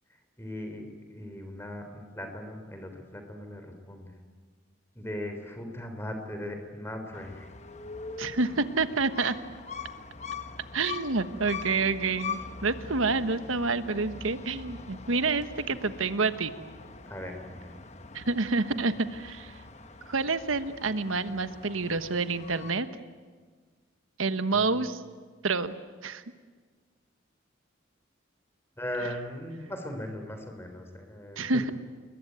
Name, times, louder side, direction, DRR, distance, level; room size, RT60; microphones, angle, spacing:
voice 1, 0.4-4.1 4.9-7.5 17.1-17.8 24.5-24.9 28.8-31.6, left 1 dB, 10° left, 5 dB, 3.6 m, -39 dB
sound 1, 7.1-22.7, left 5 dB, 35° left, 1.2 m, -43 dB
voice 2, 8.2-9.3 10.7-16.5 18.1-19.5 20.1-22.9 24.2-25.0 25.4-25.7 26.0-26.2 31.4-31.7, right 3 dB, 85° right, 11 dB, 1.3 m, -28 dB
29.0 x 21.5 x 9.4 m, 1.5 s
head